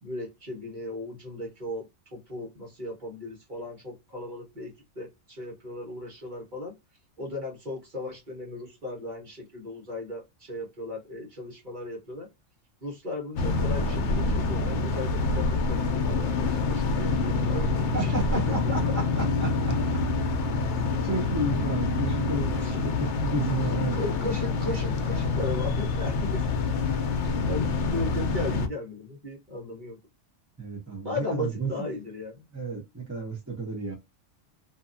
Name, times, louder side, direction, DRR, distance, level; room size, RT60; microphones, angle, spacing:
voice 1, 0.0-1.9 2.1-6.7 7.2-12.3 12.8-18.7 22.5-22.8 23.7-26.5 27.2-30.0 31.0-32.5, left 2 dB, 40° right, 1.3 m, -36 dB
sound 1, 13.4-28.7, left 3 dB, 75° left, 0.9 m, -26 dB
voice 2, 17.9-20.0 21.0-22.5 22.8-24.0 30.6-31.7 32.5-33.9, right 3 dB, 15° right, 0.8 m, -32 dB
2.7 x 2.3 x 2.6 m
omnidirectional pair, 1.2 m